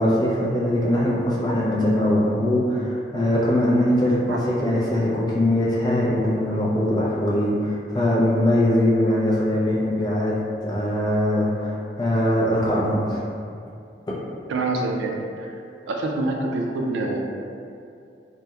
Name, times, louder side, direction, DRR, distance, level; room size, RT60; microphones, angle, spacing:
voice 1, 0.0-13.2 14.1-14.2, left 1 dB, 25° left, -6 dB, 0.4 m, -21 dB
voice 2, 14.5-15.5 15.9-17.2, right 2 dB, 90° right, 1 dB, 0.3 m, -26 dB
2.8 x 2.1 x 2.3 m, 2.4 s
head